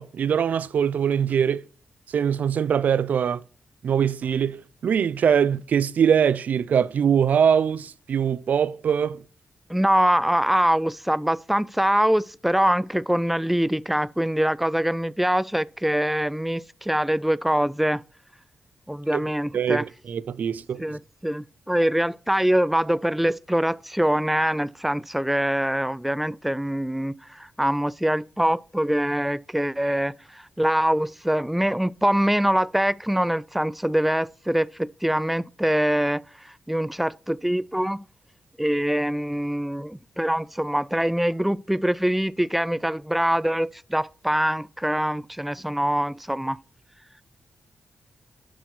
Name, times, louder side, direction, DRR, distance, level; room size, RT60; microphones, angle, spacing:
voice 1, 0.0-1.6 2.1-3.4 3.8-9.2 19.1-19.2 19.5-21.0, right 8 dB, 70° right, 0.4 m, -22 dB
voice 2, 9.7-18.0 18.9-19.9 20.8-36.2 36.7-38.1 38.6-46.6, equal, 5° right, 0.4 m, -24 dB
9.1 x 6.2 x 4.2 m
supercardioid pair, 50°, 3 cm